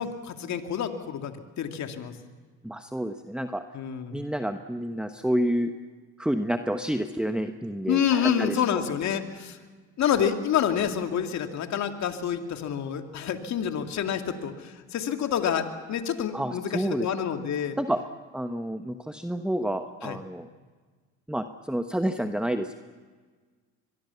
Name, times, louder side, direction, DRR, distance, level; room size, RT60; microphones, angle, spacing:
voice 1, 0.0-2.1 3.7-4.2 7.9-9.6 10.0-17.8 20.0-20.2, left 8 dB, 60° left, 6 dB, 2.5 m, -28 dB
voice 2, 2.6-3.6 4.1-5.7 6.2-8.8 16.3-17.1 17.8-18.0 18.3-20.5 21.3-22.8, right 1 dB, 5° right, 7 dB, 1.2 m, -29 dB
23.5 x 22.5 x 7.1 m, 1.5 s
supercardioid pair, 75°, 31 cm